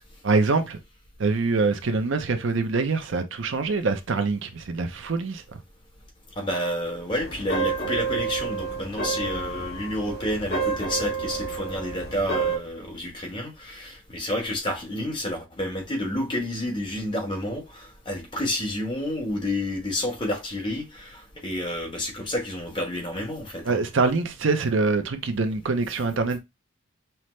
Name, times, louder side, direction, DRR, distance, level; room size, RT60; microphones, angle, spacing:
voice 1, 0.2-0.8 1.2-5.4 23.7-26.4, right 3 dB, 60° right, 0.5 m, -24 dB
voice 2, 6.4-23.8, left 1 dB, 20° left, 1.2 m, -30 dB
sound 1, 7.1-12.6, right 4 dB, 50° left, 1.6 m, -29 dB
5.7 x 2.1 x 3.1 m
head